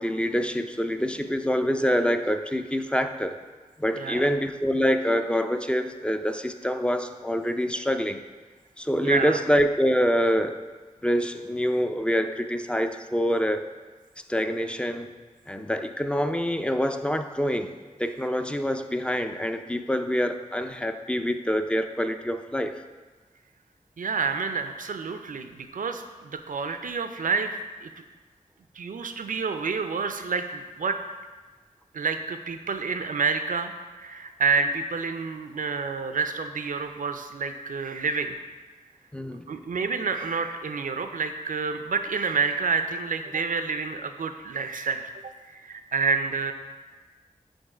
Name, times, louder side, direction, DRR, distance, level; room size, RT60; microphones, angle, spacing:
voice 1, 0.0-3.4 3.8-8.2 8.8-10.6 11.0-13.6 14.3-15.1 15.5-17.7 18.0-22.8 39.1-39.4, equal, 5° left, 8 dB, 0.4 m, -26 dB
voice 2, 3.9-4.3 9.0-9.3 24.0-27.9 28.8-31.0 31.9-38.3 39.5-45.1 45.5-46.5, right 5 dB, 70° right, 8 dB, 0.5 m, -29 dB
5.3 x 3.9 x 4.9 m, 1.3 s
wide cardioid pair, 60°, 14 cm